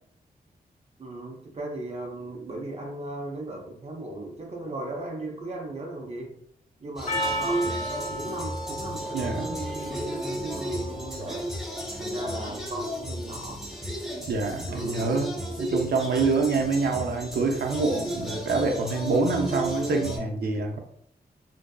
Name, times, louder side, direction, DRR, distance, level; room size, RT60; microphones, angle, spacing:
voice 1, 1.0-6.4 6.8-11.5 12.0-13.6 14.7-15.1, right 2 dB, 40° right, 0 dB, 0.6 m, -37 dB
sound 1, 7.0-20.2, equal, 5° right, 0.8 m, -34 dB
Percussion, 7.1-11.7, equal, 50° left, 0.7 m, -34 dB
voice 2, 9.1-9.6 14.3-20.8, right 3 dB, 85° right, 3 dB, 0.5 m, -26 dB
2.6 x 2.4 x 2.3 m, 0.66 s
wide cardioid pair, 100°, 16 cm